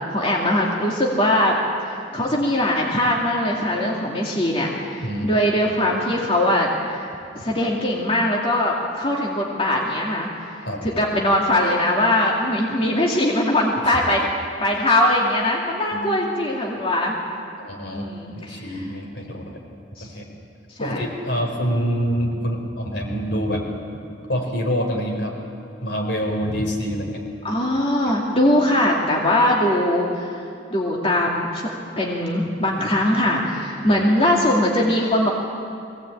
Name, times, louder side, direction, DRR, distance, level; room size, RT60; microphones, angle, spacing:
voice 1, 0.1-1.6 2.1-7.1 7.4-10.3 10.5-14.3 14.6-17.2 17.9-18.6 20.0-20.1 20.8-21.0 27.4-30.4 30.7-31.7 32.0-35.3, left 1 dB, 30° left, -3 dB, 2.3 m, -21 dB
voice 2, 5.0-5.3 10.6-10.8 15.9-16.2 17.6-19.6 20.0-20.3 20.8-23.6 24.3-25.4 25.8-27.2 33.8-34.3, equal, 75° left, 1 dB, 4.2 m, -26 dB
22.5 x 17.5 x 8.7 m, 2.5 s
head